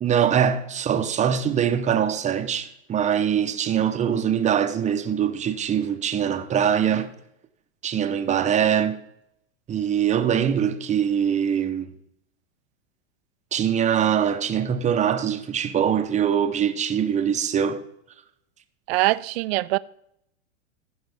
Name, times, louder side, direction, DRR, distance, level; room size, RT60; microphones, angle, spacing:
voice 1, 0.0-7.1 7.8-9.0 9.7-11.9 13.5-17.8, right 8 dB, 20° right, 0.7 m, -23 dB
voice 2, 18.9-19.8, right 20 dB, 55° right, 0.5 m, -22 dB
15.5 x 5.5 x 3.5 m
hypercardioid pair, 120°, 38 cm